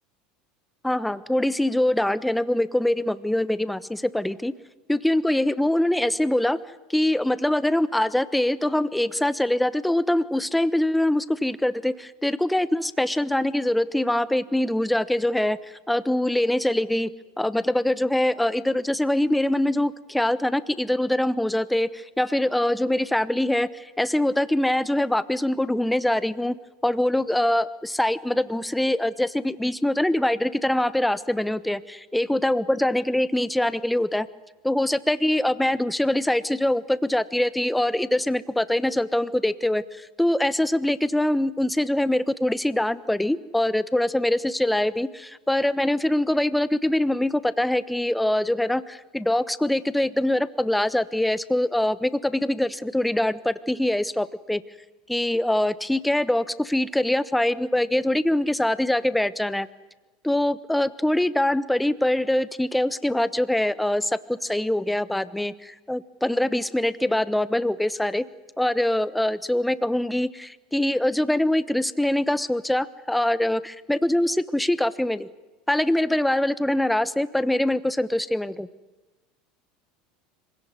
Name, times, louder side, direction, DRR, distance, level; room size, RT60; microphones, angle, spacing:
voice 1, 0.8-4.5 4.9-6.6 6.9-17.1 17.4-26.6 26.8-34.3 34.6-54.6 55.1-59.7 60.2-68.2 68.6-75.3 75.7-78.7, left 1 dB, 5° left, 16 dB, 1.1 m, -23 dB
25.5 x 17.5 x 9.6 m, 1.2 s
hypercardioid pair, 75°, 0 cm